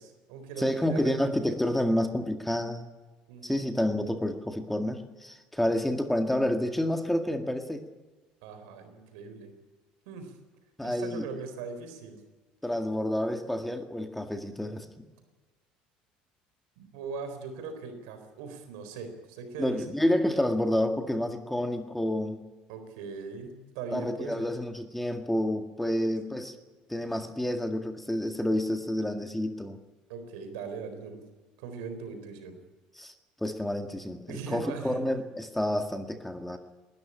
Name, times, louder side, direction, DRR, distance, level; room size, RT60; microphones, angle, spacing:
voice 1, 0.0-1.3 3.3-3.8 8.4-9.5 10.1-10.4 10.8-12.2 16.8-19.8 22.7-24.5 26.0-26.1 30.1-31.2 31.6-32.6 34.3-35.0, right 5 dB, 85° right, 8 dB, 4.1 m, -40 dB
voice 2, 0.6-2.9 3.4-7.8 10.8-11.3 12.6-15.1 19.6-22.4 23.9-26.5 26.9-29.8 32.9-33.1 33.4-36.6, left 1 dB, 5° left, 6 dB, 1.9 m, -29 dB
20.0 x 13.5 x 10.0 m, 1.3 s
supercardioid pair, 105°, 3 cm